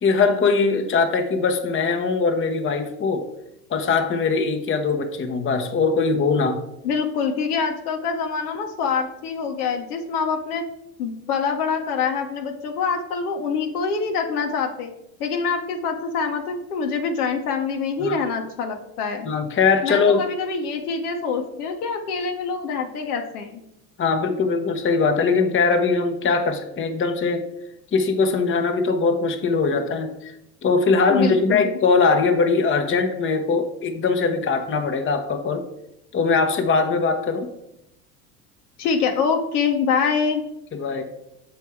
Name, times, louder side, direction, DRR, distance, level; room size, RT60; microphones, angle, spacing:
voice 1, 0.0-3.3 3.7-6.6 18.0-18.2 19.2-20.2 24.0-27.5 27.9-30.1 30.6-35.7 36.1-37.5 40.7-41.1, left 4 dB, 25° left, 6 dB, 0.9 m, -21 dB
voice 2, 6.8-10.6 11.0-14.9 15.2-19.3 19.8-23.6 31.1-31.7 38.8-40.4, left 5 dB, 80° left, 4 dB, 1.1 m, -25 dB
7.0 x 4.6 x 4.7 m, 0.84 s
hypercardioid pair, 80°, 44 cm